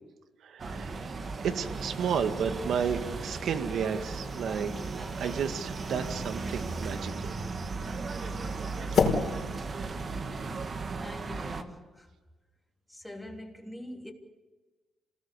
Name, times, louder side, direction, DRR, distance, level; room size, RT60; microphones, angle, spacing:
voice 1, 0.4-1.1 1.4-4.7 5.2-7.4, right 7 dB, 70° right, 1.9 m, -32 dB
sound 1, 0.6-11.6, right 3 dB, 40° right, 1.7 m, -36 dB
sound 2, 3.8-11.0, left 5 dB, 55° left, 5.3 m, -35 dB
voice 2, 11.0-12.1 12.9-14.1, left 1 dB, 5° left, 3.2 m, -44 dB
27.5 x 19.5 x 6.9 m
cardioid pair, 90°, 0 cm